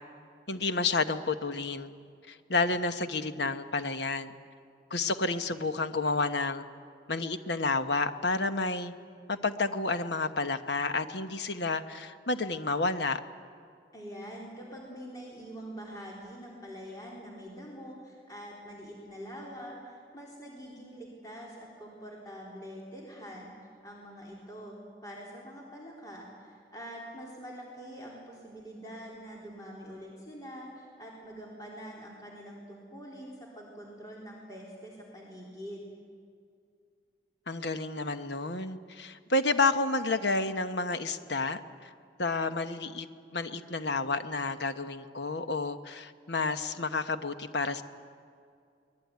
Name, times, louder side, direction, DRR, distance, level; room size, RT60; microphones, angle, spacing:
voice 1, 0.5-1.9 2.3-4.3 4.9-6.7 7.1-8.9 9.3-13.2 37.5-41.9 42.2-43.1 43.3-47.8, left 3 dB, 75° left, 9 dB, 1.2 m, -30 dB
voice 2, 13.9-23.5 23.8-24.8 25.0-35.9, equal, 20° left, -3 dB, 4.0 m, -45 dB
24.0 x 20.5 x 9.6 m, 2.3 s
head